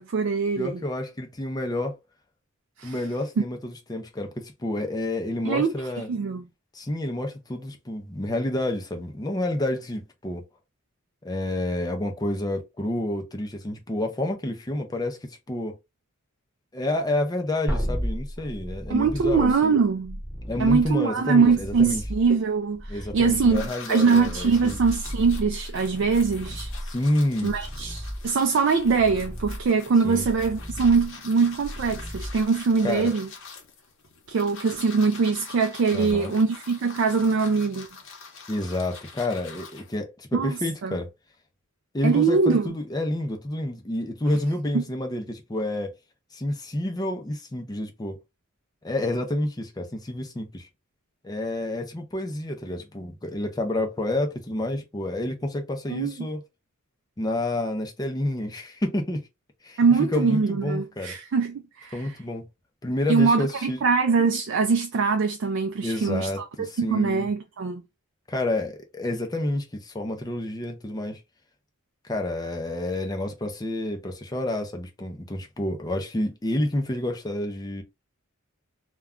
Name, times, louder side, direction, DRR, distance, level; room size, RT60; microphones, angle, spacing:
voice 1, 0.0-0.8 2.8-3.0 5.4-5.8 6.1-6.4 18.9-20.2 20.6-26.7 27.4-33.3 34.3-37.9 40.3-41.0 42.0-42.7 44.7-44.8 55.9-56.3 59.8-62.2 63.1-66.5 66.8-67.8, right 5 dB, 60° right, 0.3 m, -23 dB
voice 2, 0.6-1.9 2.8-6.1 6.7-10.4 11.2-15.8 16.7-19.7 20.5-22.0 22.9-24.8 26.8-27.5 30.0-30.2 32.8-33.1 35.9-36.3 38.5-41.1 41.9-45.9 46.3-48.2 48.8-50.7 51.2-56.4 57.2-59.3 59.6-59.8 60.1-61.1 61.9-62.5 62.8-63.8 65.8-67.3 68.3-71.2 72.1-77.8, left 1 dB, 20° left, 0.5 m, -29 dB
sound 1, 17.7-33.0 36.1-36.2, equal, ahead, 1.0 m, -35 dB
sound 2, 23.5-40.0, left 5 dB, 60° left, 0.8 m, -44 dB
2.3 x 2.2 x 3.5 m
head